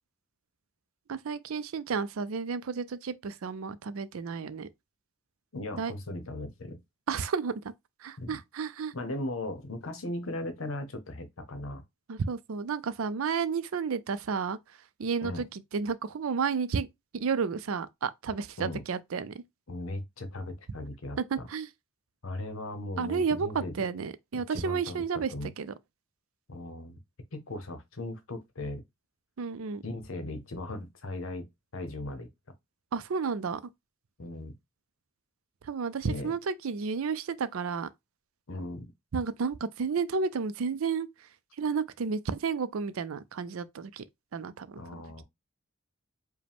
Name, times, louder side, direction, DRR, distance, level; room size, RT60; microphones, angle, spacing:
voice 1, 1.1-4.7 5.8-5.9 7.1-7.6 8.0-8.9 12.1-14.6 15.0-16.9 17.1-19.4 21.2-21.7 23.0-25.7 29.4-29.8 32.9-33.6 35.6-37.9 39.1-41.1 41.6-44.0 44.3-44.8, right 5 dB, 70° right, 0.4 m, -31 dB
voice 2, 5.5-6.8 8.2-8.4 8.9-11.8 15.2-15.4 18.6-18.8 19.7-21.5 22.2-23.7 24.3-25.5 26.5-27.0 27.3-28.8 29.8-31.5 31.7-32.3 34.2-34.5 36.0-36.3 38.5-38.9 44.8-45.2, left 2 dB, 65° left, 0.9 m, -38 dB
4.9 x 2.2 x 3.5 m
head